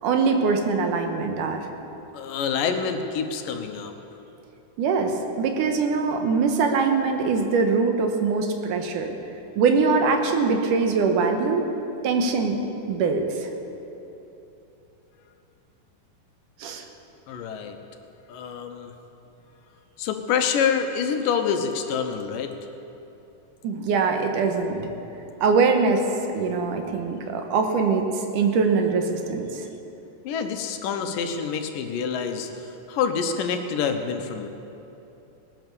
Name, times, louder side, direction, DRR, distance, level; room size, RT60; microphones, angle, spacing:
voice 1, 0.0-1.6 4.8-9.2 9.6-11.7 12.0-12.6 12.9-13.5 16.6-16.8 23.6-24.9 25.4-26.0 26.3-29.7, right 4 dB, 75° right, 4 dB, 2.6 m, -23 dB
voice 2, 2.1-3.9 17.3-17.8 18.3-18.9 20.0-22.5 30.2-34.5, left 6 dB, 80° left, 6 dB, 2.6 m, -27 dB
19.5 x 9.6 x 6.9 m, 2.9 s
omnidirectional pair, 3.8 m